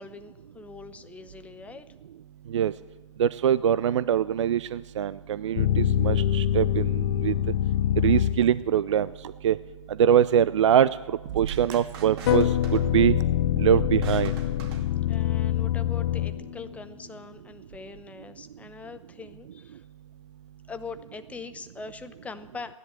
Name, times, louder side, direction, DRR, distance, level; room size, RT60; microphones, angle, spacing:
voice 1, 0.0-1.9 15.1-19.8 20.7-22.7, left 4 dB, 10° left, 10 dB, 0.8 m, -42 dB
voice 2, 3.2-7.3 8.0-9.1 9.4-9.6 10.0-10.9 11.3-13.2 13.6-14.3, right 9 dB, 65° right, 17 dB, 0.4 m, -23 dB
sound 1, 5.6-8.7 12.3-16.8, left 11 dB, 55° left, 0.6 m, -25 dB
sound 2, 11.3-15.4, right 7 dB, 50° right, 2.5 m, -38 dB
15.5 x 10.5 x 8.7 m, 1.2 s
figure-of-eight pair, 115°, 16 cm